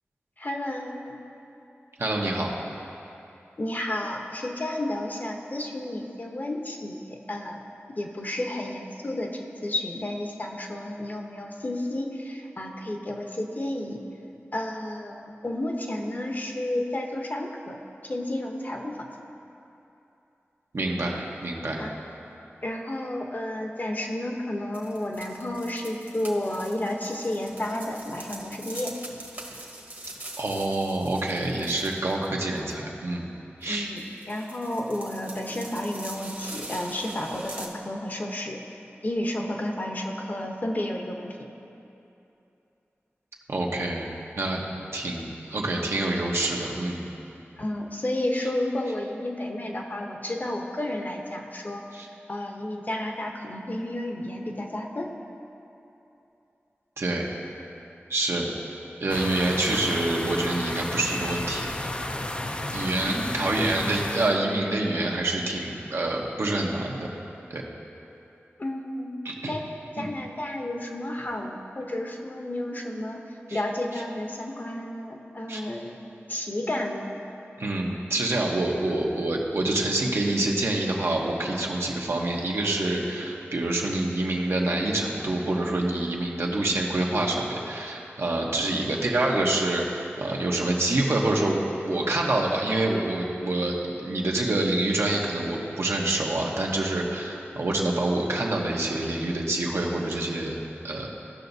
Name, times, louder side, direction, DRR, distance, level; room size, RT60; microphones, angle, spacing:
voice 1, 0.4-1.2 3.6-7.6 7.9-14.0 14.5-17.8 18.0-19.0 21.8-22.1 22.6-29.0 33.7-38.6 39.0-41.5 47.6-51.8 52.3-55.1 63.0-63.3 68.6-69.2 69.5-69.6 70.0-73.2 73.5-76.0 76.3-77.2, left 1 dB, 40° left, 2 dB, 0.8 m, -31 dB
voice 2, 2.0-2.5 20.7-21.8 30.4-33.2 33.6-33.9 43.5-44.1 44.4-44.6 44.9-47.0 51.9-52.1 57.0-57.3 58.1-58.5 59.0-61.7 62.7-67.1 67.5-67.6 69.2-69.5 70.0-70.1 73.5-73.6 75.5-75.6 77.6-100.6 100.8-101.1, right 2 dB, 70° right, -2 dB, 1.0 m, -26 dB
sound 1, 24.7-32.3 32.6-32.7 33.6-33.7 34.0-37.7, right 1 dB, 45° right, 1.2 m, -42 dB
sound 2, 59.1-64.4, left 1 dB, 25° left, 0.4 m, -32 dB
15.5 x 5.8 x 2.7 m, 2.9 s
wide cardioid pair, 70°, 4 cm